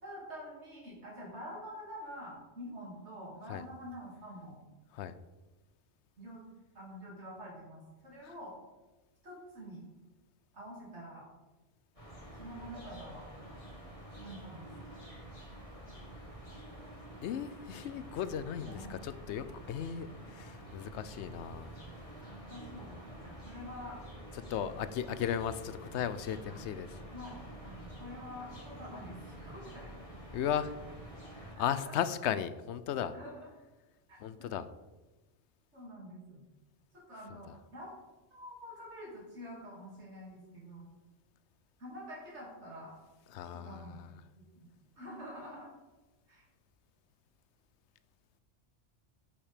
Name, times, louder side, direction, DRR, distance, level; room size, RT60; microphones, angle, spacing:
voice 1, 0.0-4.6 6.2-6.4 6.7-8.6 9.2-9.9 10.5-11.3 12.4-13.3 14.2-14.7 16.8-16.9 18.1-19.0 20.2-20.3 22.3-24.0 26.5-26.6 27.1-29.9 31.7-31.9 33.1-33.5 34.1-34.5 35.7-36.4 37.1-37.9 38.3-40.9 41.8-43.0 43.5-44.0 44.4-44.7 45.0-45.7 46.3-46.5, equal, 75° right, -4 dB, 2.9 m, -47 dB
sound 1, 12.0-31.6, right 1 dB, 30° left, 1.9 m, -48 dB
voice 2, 17.2-21.7 24.5-26.9 30.3-30.7 31.3-33.1 34.2-34.6 43.3-44.1, left 9 dB, 75° left, 14 dB, 0.9 m, -36 dB
7.2 x 7.2 x 5.0 m, 1.1 s
omnidirectional pair, 1.2 m